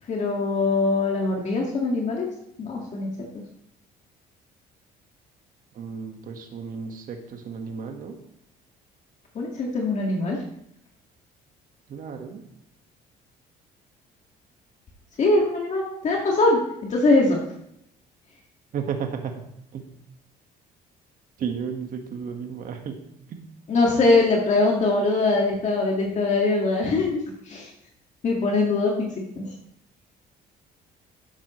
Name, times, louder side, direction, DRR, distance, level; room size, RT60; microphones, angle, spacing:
voice 1, 0.1-2.3 2.6-3.1 9.3-10.4 15.2-16.6 16.9-17.4 23.7-27.7 28.2-28.9 29.4-29.5, left 3 dB, 45° left, -1 dB, 2.0 m, -22 dB
voice 2, 5.7-8.2 11.9-12.4 18.7-19.4 19.7-19.8 21.4-23.0 23.3-23.4, right 6 dB, 55° right, 4 dB, 1.6 m, -33 dB
12.5 x 9.0 x 3.2 m, 0.77 s
cardioid pair, 110°, 17 cm